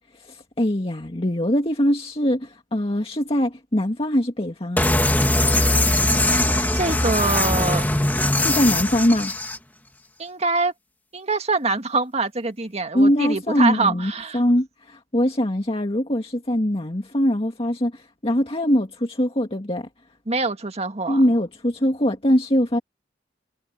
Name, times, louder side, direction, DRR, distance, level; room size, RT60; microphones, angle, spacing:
voice 1, 0.1-4.9 8.4-9.3 12.9-19.9 21.1-22.8, equal, 30° left, 2.0 m, -22 dB
sound 1, 4.8-9.6, left 1 dB, 10° left, 1.7 m, -20 dB
voice 2, 6.7-7.9 10.2-10.7 11.1-14.4 20.3-21.2, right 3 dB, 35° right, 1.9 m, -24 dB
head